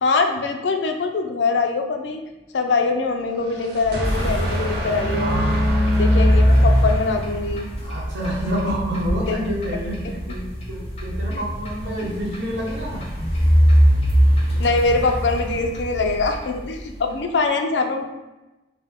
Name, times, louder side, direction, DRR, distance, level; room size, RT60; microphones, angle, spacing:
voice 1, 0.0-2.2 2.5-5.4 5.9-7.7 9.2-9.4 11.3-11.4 11.9-12.0 14.6-18.1, left 3 dB, 85° left, 5 dB, 0.5 m, -23 dB
sound 1, 3.2-7.8, right 1 dB, 60° right, 0.8 m, -27 dB
sound 2, 4.0-16.9, equal, 35° left, 0.9 m, -21 dB
voice 2, 5.1-6.0 7.8-13.1, equal, 80° right, -4 dB, 1.1 m, -28 dB
4.3 x 2.1 x 3.5 m, 1.0 s
head